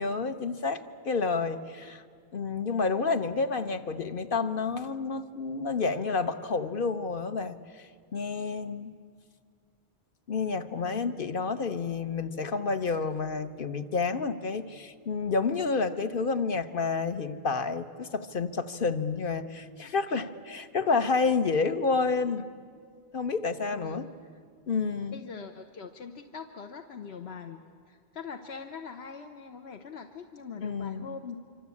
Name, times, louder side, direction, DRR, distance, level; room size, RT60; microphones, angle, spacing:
voice 1, 0.0-2.0 2.3-7.6 8.1-8.9 10.3-22.5 23.1-24.1 24.7-25.2 30.6-31.1, left 4 dB, 60° left, 9 dB, 1.2 m, -29 dB
voice 2, 10.7-11.1 23.7-24.0 25.1-27.6 27.9-31.4, left 6 dB, 90° left, 5 dB, 1.3 m, -42 dB
25.5 x 25.5 x 8.5 m, 2.2 s
omnidirectional pair, 1.0 m